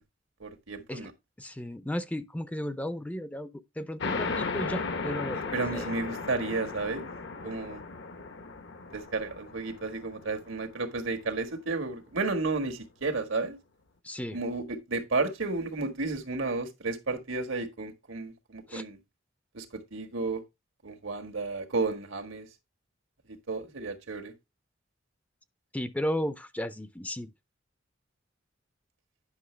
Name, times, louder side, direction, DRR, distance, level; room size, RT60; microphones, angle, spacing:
voice 1, 0.4-1.1 5.5-7.1 7.4-7.8 8.9-13.6 14.3-19.0 19.5-20.4 20.8-22.5 23.3-24.3, right 3 dB, 85° right, 1.6 m, -32 dB
voice 2, 1.4-5.9 14.0-14.4 18.7-18.8 25.7-27.3, left 1 dB, 10° left, 0.5 m, -34 dB
sound 1, 4.0-11.2, left 4 dB, 65° left, 0.9 m, -36 dB
9.7 x 5.9 x 3.2 m
head